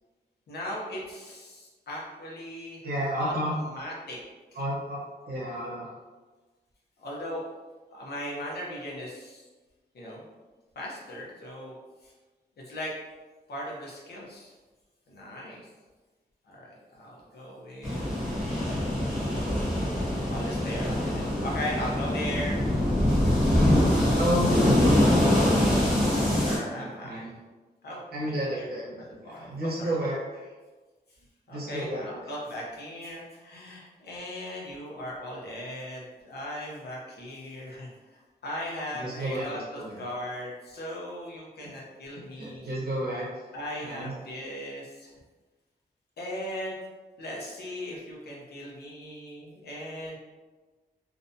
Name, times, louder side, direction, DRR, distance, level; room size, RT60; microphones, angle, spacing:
voice 1, 0.5-2.8 3.2-4.2 4.5-4.6 7.0-7.5 7.9-9.4 9.9-10.2 10.8-11.8 12.0-12.1 12.6-12.9 13.5-14.5 15.1-15.7 16.5-18.0 20.3-22.6 26.4-27.3 27.8-28.7 29.0-29.9 31.5-42.6 43.5-45.1 46.2-46.7 47.2-50.2, equal, 70° left, -4 dB, 0.7 m, -38 dB
voice 2, 2.8-3.6 4.6-5.0 5.3-5.9 24.2-25.3 26.8-27.3 28.1-29.0 29.2-30.5 31.5-32.1 39.0-40.0 42.1-43.3 43.8-44.1, equal, 65° right, -6 dB, 0.8 m, -31 dB
sound 1, 17.8-26.6, left 1 dB, ahead, 1.0 m, -24 dB
2.5 x 2.1 x 2.6 m, 1.3 s
wide cardioid pair, 165°, 17 cm